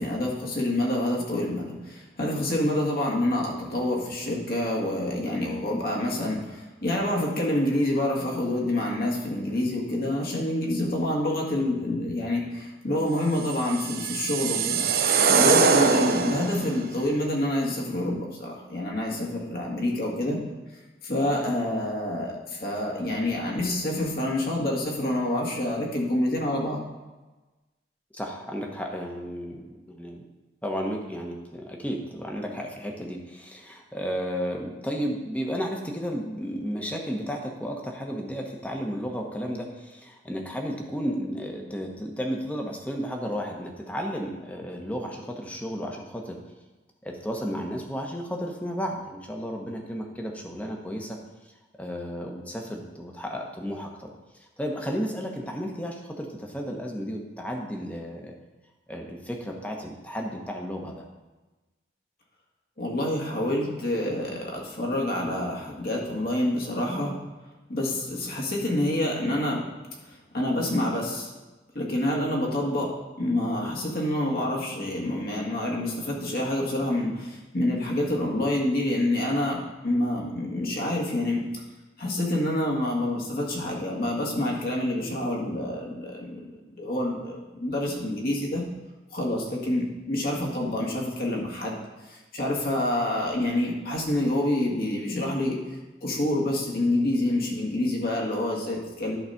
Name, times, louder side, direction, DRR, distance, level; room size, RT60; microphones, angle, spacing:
voice 1, 0.0-14.9 15.3-20.4 21.0-26.8 62.8-67.2 67.7-69.7 70.1-71.3 71.8-81.5 82.0-88.6 89.1-91.8 92.1-95.6 96.0-99.2, left 1 dB, 55° left, -2 dB, 1.8 m, -27 dB
sound 1, 13.5-16.7, right 5 dB, 55° right, 0.6 m, -22 dB
voice 2, 28.1-30.2 30.6-46.4 47.0-51.2 51.8-58.3 58.9-61.0, equal, 10° left, 1 dB, 1.0 m, -33 dB
11.0 x 4.0 x 5.7 m, 1.2 s
head